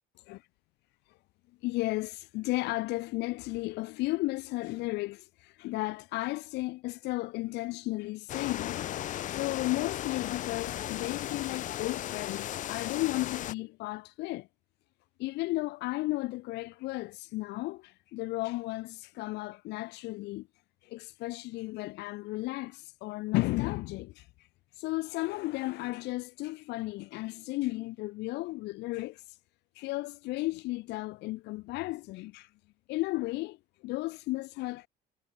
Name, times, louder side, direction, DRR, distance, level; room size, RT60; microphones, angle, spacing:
voice 1, 1.6-8.8 9.3-14.5 15.2-20.5 20.8-24.5 24.7-29.4 29.7-32.5 32.9-33.6 33.8-34.9, left 20 dB, 85° left, 0.7 m, -34 dB
sound 1, 8.3-13.5, left 13 dB, 50° left, 0.4 m, -36 dB
cardioid pair, 110°, 17 cm